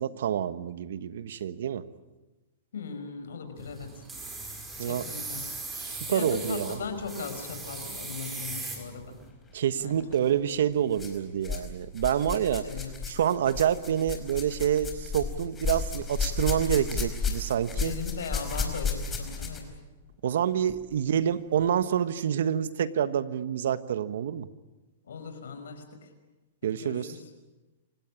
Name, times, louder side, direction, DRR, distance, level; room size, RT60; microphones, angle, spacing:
voice 1, 0.0-1.9 4.8-5.1 5.8-6.8 9.5-12.7 13.1-17.9 20.2-24.5 26.6-27.1, right 9 dB, 75° right, 14 dB, 1.4 m, -27 dB
voice 2, 2.7-4.0 4.9-5.4 6.1-9.2 9.8-10.0 12.6-12.9 17.7-19.7 21.0-21.1 25.1-26.1 26.6-27.3, left 5 dB, 85° left, 7 dB, 5.4 m, -38 dB
sound 1, 3.6-9.3, right 3 dB, 15° right, 5.3 m, -39 dB
sound 2, 10.0-10.2 10.9-11.7 12.0-19.8 20.7-20.8 21.6-21.7, left 5 dB, 15° left, 4.7 m, -33 dB
28.0 x 16.5 x 9.8 m, 1.1 s
hypercardioid pair, 135°, 0 cm